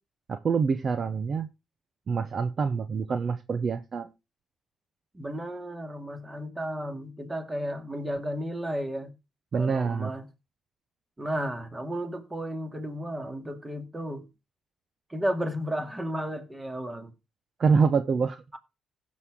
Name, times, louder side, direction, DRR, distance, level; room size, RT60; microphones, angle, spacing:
voice 1, 0.3-1.5 2.1-4.1 9.5-10.1 17.6-18.4, right 5 dB, 45° right, 0.8 m, -26 dB
voice 2, 5.1-9.1 9.6-10.3 11.2-14.3 15.1-17.1, equal, 20° right, 2.2 m, -33 dB
16.0 x 6.4 x 3.6 m
cardioid pair, 90°, 0 cm